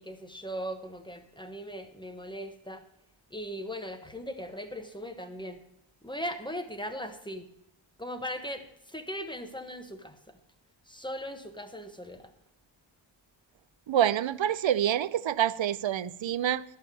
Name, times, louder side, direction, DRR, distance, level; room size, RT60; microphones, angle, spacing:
voice 1, 0.0-2.8 3.3-5.6 6.0-7.5 8.0-10.4 10.9-12.3, equal, 10° left, 7 dB, 1.2 m, -39 dB
voice 2, 13.9-16.6, right 10 dB, 75° right, 18 dB, 0.6 m, -27 dB
12.0 x 5.7 x 8.2 m, 0.80 s
wide cardioid pair, 85°, 46 cm